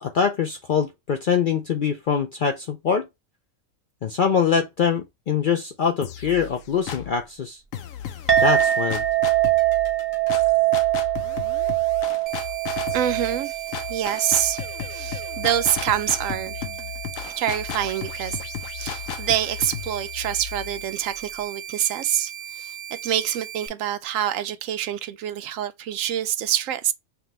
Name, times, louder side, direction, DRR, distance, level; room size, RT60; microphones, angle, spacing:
voice 1, 0.0-3.1 4.0-7.6 8.4-9.0, left 7 dB, 60° left, 0.5 m, -23 dB
sound 1, 6.0-7.2 7.7-21.4, left 9 dB, 85° left, 1.1 m, -35 dB
Chink clink, 8.3-17.0, right 14 dB, 10° right, 0.7 m, -24 dB
sound 2, 12.3-23.7, right 9 dB, 45° right, 0.5 m, -38 dB
voice 2, 12.9-13.6 13.9-14.6 14.9-16.6 17.4-18.4 18.8-26.9, right 10 dB, 75° right, 0.9 m, -26 dB
5.9 x 2.2 x 2.9 m
omnidirectional pair, 1.4 m